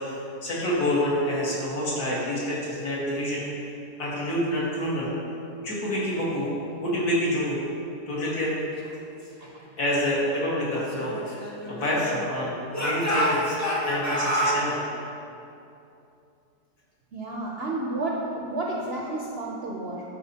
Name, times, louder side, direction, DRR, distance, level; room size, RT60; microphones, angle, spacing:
voice 1, 0.0-3.7 4.0-5.1 5.6-6.5 6.8-7.6 8.1-8.6 9.8-13.5 13.9-14.8, left 1 dB, 70° left, -7 dB, 2.1 m, -27 dB
Speech / Shout, 10.7-12.3 12.7-14.6, equal, 25° left, 0.3 m, -27 dB
voice 2, 17.1-20.0, right 2 dB, 60° right, -3 dB, 0.6 m, -31 dB
11.5 x 4.2 x 2.8 m, 2.7 s
omnidirectional pair, 1.7 m